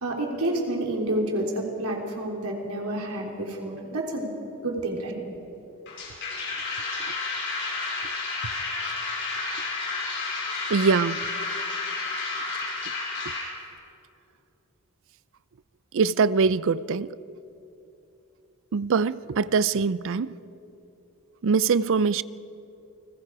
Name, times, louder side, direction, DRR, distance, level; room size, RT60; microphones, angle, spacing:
voice 1, 0.0-4.3 4.6-5.2, right 1 dB, 85° right, 3.7 m, -29 dB
sound 1, 5.9-13.5, left 3 dB, 60° left, 5.9 m, -31 dB
voice 2, 10.7-11.2 15.9-17.1 18.7-20.3 21.4-22.2, right 5 dB, 65° right, 0.5 m, -23 dB
29.0 x 20.5 x 4.8 m
head